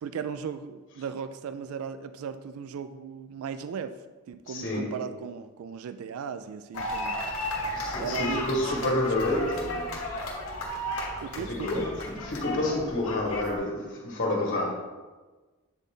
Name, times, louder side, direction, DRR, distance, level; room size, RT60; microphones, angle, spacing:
voice 1, 0.0-3.9 4.3-7.2 8.0-9.6 11.2-11.9, right 7 dB, 70° right, 0.3 m, -36 dB
voice 2, 4.5-5.1 7.7-10.1 11.3-14.7, left 2 dB, 60° left, 1.7 m, -29 dB
sound 1, 6.7-13.6, left 1 dB, 80° left, 1.4 m, -34 dB
8.3 x 3.9 x 3.7 m
head